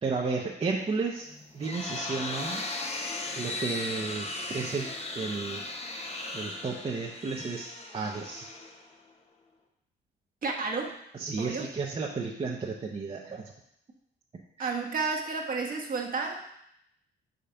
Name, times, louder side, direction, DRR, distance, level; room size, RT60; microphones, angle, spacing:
voice 1, 0.0-1.3 1.5-2.6 3.4-5.6 6.3-8.5 11.1-13.5 14.6-14.7, right 4 dB, 30° right, -2 dB, 0.8 m, -33 dB
sound 1, 1.3-9.1, left 2 dB, 30° left, 0.9 m, -37 dB
voice 2, 10.4-10.9 11.4-11.7 14.6-16.5, right 4 dB, 45° right, 1 dB, 1.1 m, -31 dB
5.2 x 3.8 x 5.7 m, 0.76 s
cardioid pair, 90°, 20 cm